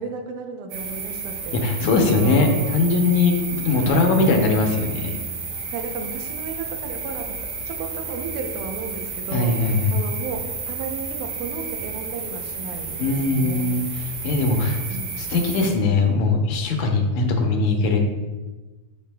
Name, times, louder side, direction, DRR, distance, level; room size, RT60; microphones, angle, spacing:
voice 1, 0.0-1.6 2.0-2.7 3.7-4.4 5.7-13.9 14.9-15.4 17.4-17.6, right 5 dB, 80° right, 4 dB, 2.2 m, -34 dB
sound 1, 0.7-15.7, right 5 dB, 60° right, 1.9 m, -32 dB
voice 2, 1.5-5.2 9.3-10.0 13.0-14.8 15.2-18.0, left 3 dB, 75° left, 3 dB, 2.1 m, -20 dB
12.0 x 4.9 x 2.2 m, 1.2 s
omnidirectional pair, 3.5 m